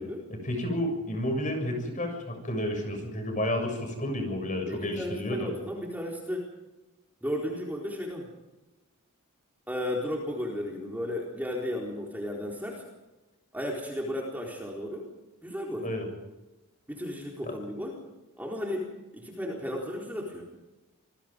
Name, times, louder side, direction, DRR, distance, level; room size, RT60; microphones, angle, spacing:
voice 1, 0.3-5.5 15.8-16.1 17.4-17.5, left 1 dB, 35° left, 4 dB, 7.1 m, -31 dB
voice 2, 4.7-6.5 7.2-8.3 9.7-12.8 13.5-15.1 15.4-15.9 16.9-18.0 18.4-20.5, left 1 dB, 10° right, -2 dB, 4.1 m, -34 dB
27.5 x 21.0 x 5.2 m, 1.1 s
head